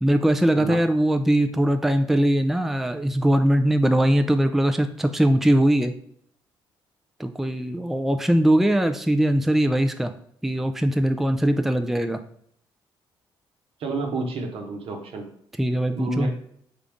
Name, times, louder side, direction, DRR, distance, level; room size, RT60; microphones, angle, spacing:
voice 1, 0.0-5.9 7.2-10.1 10.4-12.2 15.6-16.3, right 1 dB, 5° right, 7 dB, 0.4 m, -21 dB
voice 2, 13.8-15.3 16.0-16.4, right 2 dB, 65° right, 2 dB, 1.0 m, -29 dB
3.8 x 3.5 x 3.5 m, 0.68 s
hypercardioid pair, 50°, 11 cm